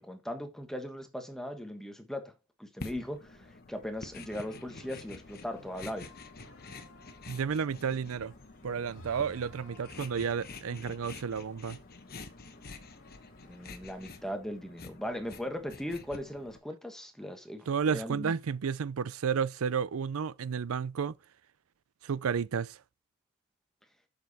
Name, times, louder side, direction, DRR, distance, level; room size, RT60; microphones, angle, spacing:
voice 1, 0.0-2.3 2.6-6.1 13.5-18.3, left 1 dB, ahead, 1.3 m, -39 dB
sound 1, 2.8-16.6, left 3 dB, 45° left, 1.0 m, -48 dB
sound 2, 4.2-14.3, left 1 dB, 60° left, 2.4 m, -56 dB
voice 2, 7.3-8.3 8.6-11.8 17.7-21.1 22.0-22.8, right 6 dB, 70° right, 0.5 m, -32 dB
8.0 x 6.6 x 4.1 m
head